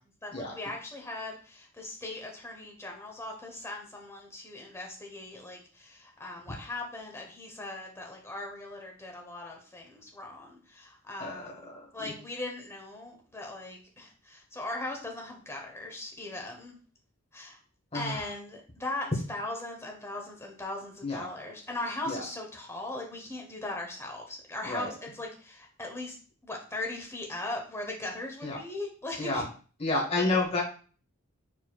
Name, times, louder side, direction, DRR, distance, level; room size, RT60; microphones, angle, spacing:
voice 1, 0.2-16.8 17.3-17.6 17.9-26.2 26.4-29.4, left 2 dB, 15° left, 0 dB, 1.0 m, -39 dB
voice 2, 11.2-12.1 17.9-18.2 21.0-21.3 22.1-22.2 24.6-24.9 28.4-28.6 29.2-29.4 29.8-30.6, left 2 dB, 30° left, -2 dB, 1.2 m, -30 dB
4.5 x 4.2 x 2.3 m, 0.40 s
head